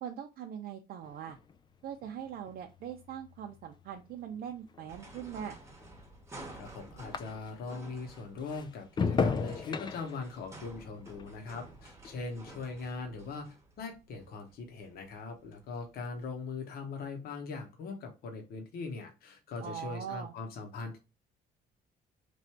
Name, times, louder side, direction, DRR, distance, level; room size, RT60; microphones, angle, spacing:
voice 1, 0.0-1.4 1.8-5.6 19.6-20.3, right 9 dB, 65° right, 3 dB, 0.6 m, -41 dB
sound 1, 1.0-7.8 8.1-12.7 13.0-13.5, left 5 dB, 25° left, 0.3 m, -38 dB
sound 2, 4.9-16.3, right 2 dB, 15° right, 1.0 m, -52 dB
voice 2, 6.3-21.0, left 4 dB, 65° left, 3 dB, 1.0 m, -41 dB
3.1 x 2.6 x 4.4 m, 0.28 s
cardioid pair, 110°, 17 cm